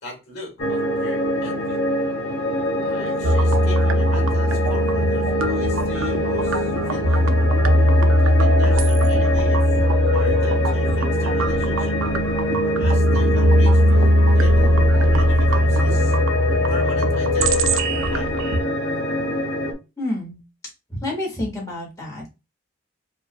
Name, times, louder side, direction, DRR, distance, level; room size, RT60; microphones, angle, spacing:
voice 1, 0.0-1.8 2.8-7.3 8.2-9.7 10.1-12.0 12.6-16.2 16.7-18.4, left 2 dB, 55° left, 1.9 m, -38 dB
sound 1, 0.6-19.7, left 1 dB, 80° left, 1.1 m, -24 dB
sound 2, 3.2-18.6, equal, 80° right, 0.5 m, -19 dB
voice 2, 20.0-20.4 20.9-22.3, left 1 dB, 15° left, 1.5 m, -28 dB
4.7 x 2.5 x 2.2 m
head